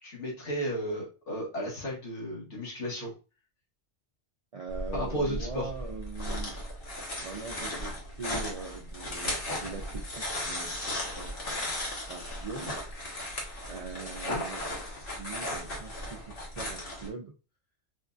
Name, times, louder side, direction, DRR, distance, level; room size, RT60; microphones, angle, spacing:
voice 1, 0.0-3.1 4.9-5.7 14.2-14.4, equal, 85° left, -3 dB, 1.8 m, -34 dB
voice 2, 4.5-6.5 7.2-11.3 12.1-12.8 13.7-17.3, right 4 dB, 70° right, 1 dB, 0.3 m, -42 dB
sound 1, 4.7-17.1, left 1 dB, 55° left, 1.2 m, -36 dB
4.4 x 2.5 x 2.3 m, 0.33 s
omnidirectional pair, 1.2 m